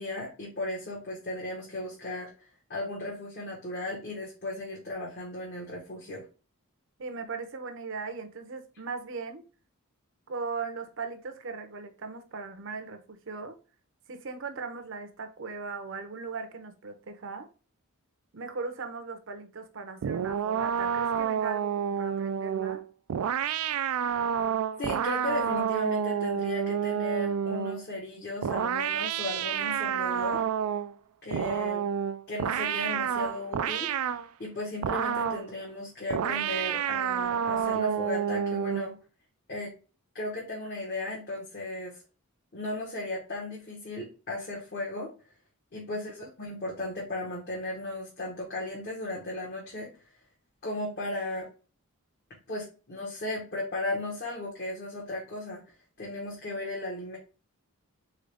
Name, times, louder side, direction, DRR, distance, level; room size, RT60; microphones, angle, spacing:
voice 1, 0.0-6.2 24.8-30.4 31.2-31.8 32.3-33.9 34.4-38.9 39.5-39.7 40.1-42.0 42.5-45.1 45.7-49.9 50.6-51.5 52.5-55.6 56.0-57.2, left 2 dB, 45° left, 1.3 m, -36 dB
voice 2, 7.0-9.4 10.3-13.5 14.1-17.5 18.3-22.8 45.9-46.3, right 4 dB, 60° right, 0.8 m, -38 dB
sound 1, 20.0-27.8 28.4-30.9 31.3-34.3 34.8-35.5 36.1-38.9, right 8 dB, 75° right, 0.3 m, -29 dB
3.8 x 3.8 x 3.4 m
head